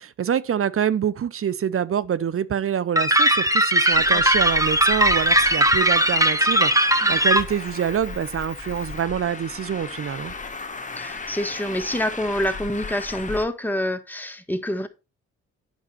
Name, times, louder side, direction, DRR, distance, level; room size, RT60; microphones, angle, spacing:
voice 1, 0.0-10.3, right 8 dB, 45° right, 0.7 m, -26 dB
sound 1, 3.0-7.4, right 1 dB, 10° right, 1.1 m, -19 dB
Traffic noise roadway noise, 3.9-13.4, left 4 dB, 25° left, 1.4 m, -36 dB
voice 2, 3.9-4.2 7.0-7.2 11.0-14.9, left 1 dB, 5° left, 1.4 m, -27 dB
8.8 x 5.6 x 4.2 m
hypercardioid pair, 45°, 33 cm